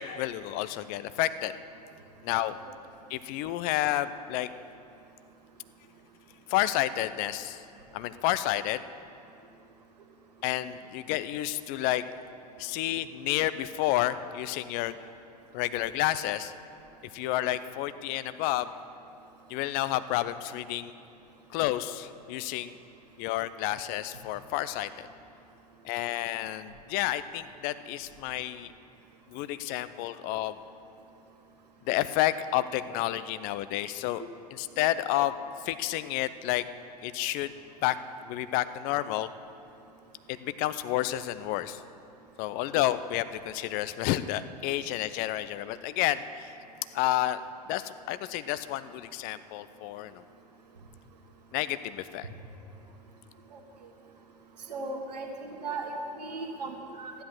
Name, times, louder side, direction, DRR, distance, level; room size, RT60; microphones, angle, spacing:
voice 1, 0.0-1.5 2.2-2.6 3.1-4.5 6.5-7.6 7.9-8.8 10.4-12.0 12.6-15.1 15.5-16.5 17.1-18.7 19.5-20.9 21.5-22.7 23.2-25.1 25.8-28.7 29.3-30.6 31.9-34.2 34.5-35.3 35.6-36.6 37.0-37.5 37.8-38.0 38.2-39.3 40.3-41.8 42.4-46.6 46.9-47.4 47.7-50.2 51.5-52.3, left 14 dB, 45° left, 14 dB, 0.6 m, -30 dB
voice 2, 54.7-57.1, right 3 dB, 75° right, 3 dB, 1.6 m, -37 dB
13.0 x 10.5 x 6.2 m, 2.7 s
figure-of-eight pair, 85°, 21 cm